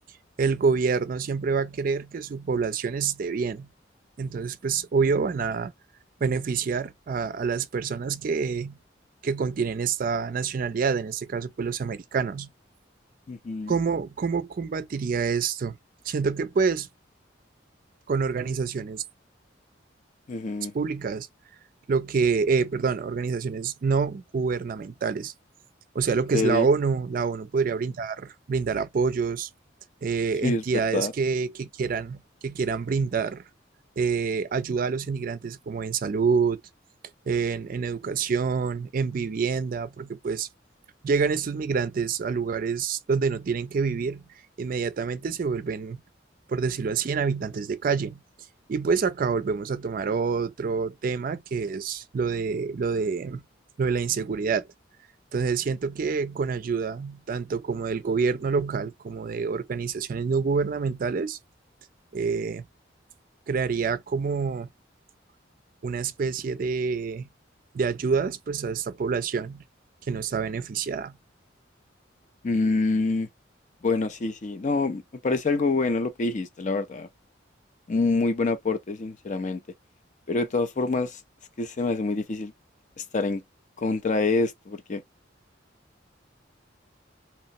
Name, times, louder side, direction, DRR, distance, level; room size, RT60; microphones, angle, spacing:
voice 1, 0.4-3.7 4.2-5.7 6.2-8.8 9.2-12.5 13.7-15.8 16.1-16.9 18.1-19.0 20.7-21.3 21.9-25.3 25.9-29.5 30.0-33.4 34.0-36.6 37.3-40.5 41.0-44.3 44.6-46.0 46.5-48.2 48.7-53.4 53.8-54.7 55.3-61.4 62.1-62.6 63.5-64.7 65.8-67.3 67.7-69.6 70.1-71.2, right 5 dB, 45° right, 0.4 m, -27 dB
voice 2, 13.3-13.8 20.3-20.7 26.3-26.7 30.4-31.1 72.4-73.3 73.8-77.1 77.9-79.6 80.3-81.2 81.6-82.5 83.0-83.4 83.8-85.0, left 3 dB, 40° left, 0.5 m, -26 dB
2.9 x 2.1 x 2.6 m
head